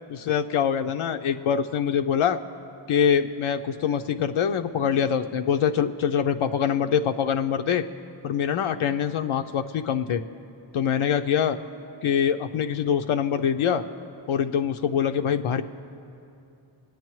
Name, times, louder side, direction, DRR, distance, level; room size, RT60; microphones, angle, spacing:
voice 1, 0.3-2.4 2.9-7.8 8.2-10.2 10.7-11.6 12.0-13.8 14.3-15.6, left 8 dB, 80° left, 6 dB, 0.5 m, -24 dB
22.0 x 8.9 x 3.1 m, 2.8 s
cardioid pair, 40°, 49 cm